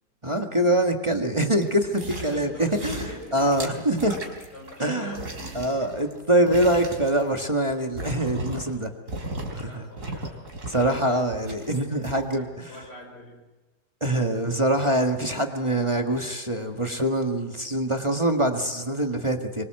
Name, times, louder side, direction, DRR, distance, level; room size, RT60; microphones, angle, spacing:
voice 1, 0.2-3.0 3.3-4.1 4.8-5.2 5.6-8.9 9.5-9.9 10.7-12.7 14.0-19.6, right 1 dB, 20° right, 3 dB, 1.8 m, -24 dB
sound 1, 1.5-2.4 2.7-4.8 5.1-8.8 9.1-9.6 10.0-12.3 12.8-12.9, right 1 dB, 50° right, 4.4 m, -36 dB
voice 2, 2.2-3.4 3.7-3.8 4.5-5.7 9.6-10.4 10.7-11.2 11.9-13.5, left 1 dB, 85° left, 0 dB, 6.6 m, -42 dB
26.5 x 24.5 x 7.9 m, 1.2 s
omnidirectional pair, 1.7 m